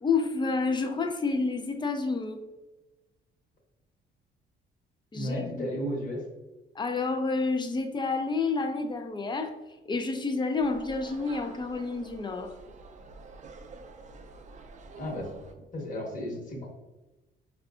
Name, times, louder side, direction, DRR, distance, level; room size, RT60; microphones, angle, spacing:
voice 1, 0.0-2.4 5.1-5.7 6.8-9.5 9.9-12.5, left 4 dB, 25° left, 6 dB, 0.4 m, -29 dB
voice 2, 5.1-6.2 15.0-15.3 15.7-16.7, equal, 40° left, -2 dB, 1.1 m, -33 dB
sound 1, 10.5-15.5, right 3 dB, 40° right, 0.4 m, -48 dB
4.6 x 2.4 x 2.4 m, 1.1 s
cardioid pair, 90°, 20 cm